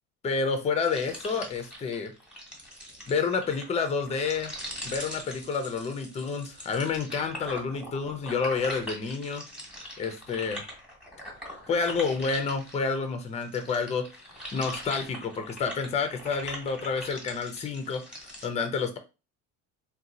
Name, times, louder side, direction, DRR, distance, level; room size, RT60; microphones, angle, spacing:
voice 1, 0.2-2.1 3.1-4.5 4.8-9.4 10.0-10.6 11.7-14.1 14.5-18.0 18.4-19.0, left 5 dB, 20° left, 7 dB, 0.5 m, -29 dB
sound 1, 0.8-13.0 13.4-18.5, equal, 5° right, 1.1 m, -42 dB
2.8 x 2.3 x 3.8 m, 0.29 s
cardioid pair, 125°, 33 cm